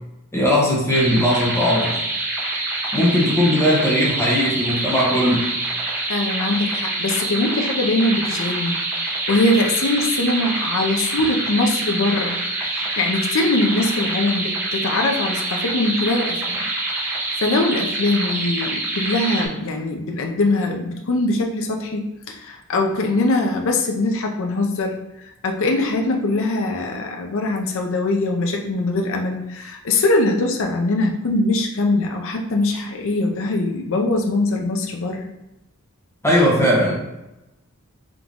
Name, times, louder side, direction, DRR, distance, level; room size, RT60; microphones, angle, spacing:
voice 1, 0.3-2.0 2.9-5.6 36.2-37.0, equal, 10° left, -6 dB, 1.1 m, -18 dB
sound 1, 0.9-19.5, right 2 dB, 10° right, 0.8 m, -26 dB
voice 2, 6.1-12.4 12.7-16.6 17.4-25.0 25.4-35.3, left 2 dB, 60° left, 2 dB, 0.5 m, -22 dB
3.6 x 3.0 x 3.6 m, 0.95 s
head